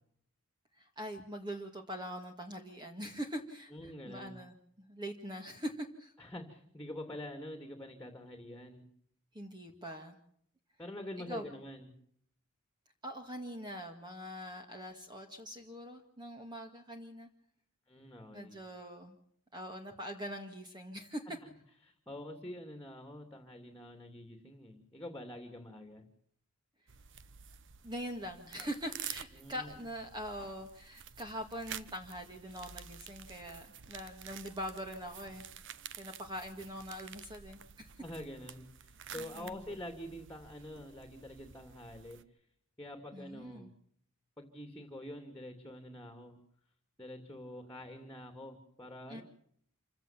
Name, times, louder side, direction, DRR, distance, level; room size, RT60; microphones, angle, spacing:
voice 1, 0.8-6.1 9.3-10.2 11.3-11.5 13.0-17.3 18.3-19.2 19.5-21.4 27.8-35.5 36.0-37.9 39.2-39.6 43.1-43.7 49.1-49.2, equal, 20° right, 4 dB, 1.9 m, -43 dB
voice 2, 3.7-4.4 6.2-8.9 10.8-11.9 17.9-18.6 21.8-26.0 29.3-29.7 38.0-42.2 42.8-43.7 44.4-46.4 47.0-49.2, left 1 dB, 10° left, 6 dB, 2.6 m, -46 dB
sound 1, 26.9-42.2, right 9 dB, 55° right, 1.1 m, -50 dB
27.5 x 16.0 x 7.3 m, 0.68 s
head